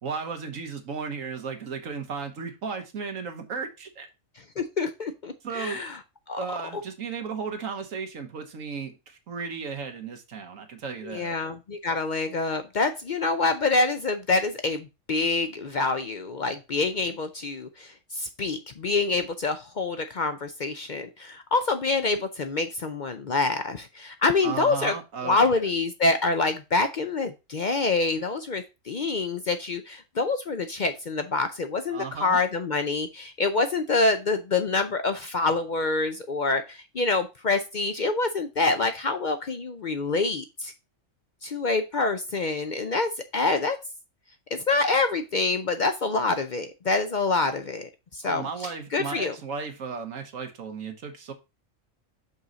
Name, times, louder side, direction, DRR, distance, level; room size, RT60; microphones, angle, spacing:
voice 1, 0.0-4.1 5.4-5.8 6.4-11.4 24.4-25.6 31.9-32.4 48.2-51.3, right 5 dB, 90° right, 1.6 m, -35 dB
voice 2, 4.6-6.0 6.3-6.4 11.0-24.9 25.2-40.7 41.4-43.8 44.5-49.3, left 3 dB, 50° left, 0.6 m, -26 dB
6.2 x 5.5 x 3.9 m
omnidirectional pair, 1.3 m